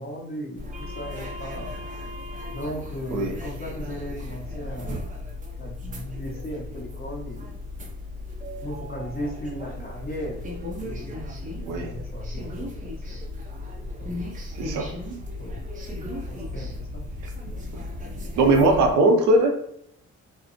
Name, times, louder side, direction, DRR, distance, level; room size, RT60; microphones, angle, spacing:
voice 1, 0.0-1.7 2.5-5.0 5.6-7.6 8.6-10.5 10.8-11.2 11.7-13.2 14.0-14.2 15.4-15.6 16.3-17.0, equal, 30° left, -3 dB, 1.0 m, -36 dB
sound 1, 0.5-18.9, left 2 dB, 25° right, 0.5 m, -36 dB
voice 2, 14.6-14.9 18.4-19.5, right 2 dB, 90° right, 3 dB, 0.6 m, -19 dB
2.5 x 2.0 x 2.5 m, 0.73 s
cardioid pair, 90°, 30 cm